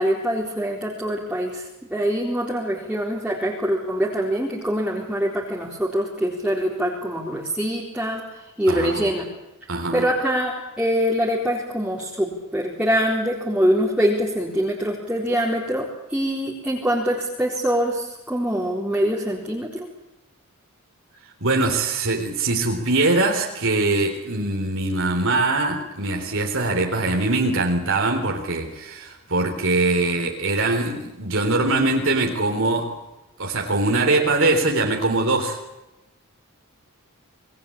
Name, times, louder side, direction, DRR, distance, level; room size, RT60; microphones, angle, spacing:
voice 1, 0.0-9.3 9.9-19.9, equal, 5° right, -4 dB, 4.0 m, -24 dB
voice 2, 8.7-9.1 9.7-10.1 21.4-32.9 33.4-35.6, right 2 dB, 65° right, 1 dB, 3.8 m, -22 dB
28.0 x 20.5 x 8.7 m, 0.99 s
head